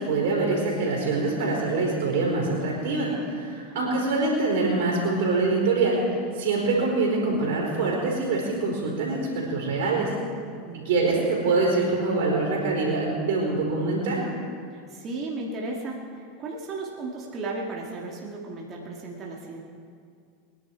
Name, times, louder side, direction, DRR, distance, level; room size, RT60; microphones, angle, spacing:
voice 1, 0.0-10.1 10.7-14.2, right 3 dB, 70° right, -3 dB, 4.2 m, -25 dB
voice 2, 3.7-4.2 10.6-11.2 14.7-19.6, right 3 dB, 40° right, -2 dB, 2.2 m, -35 dB
23.0 x 10.5 x 4.6 m, 2.2 s
hypercardioid pair, 95°, 0 cm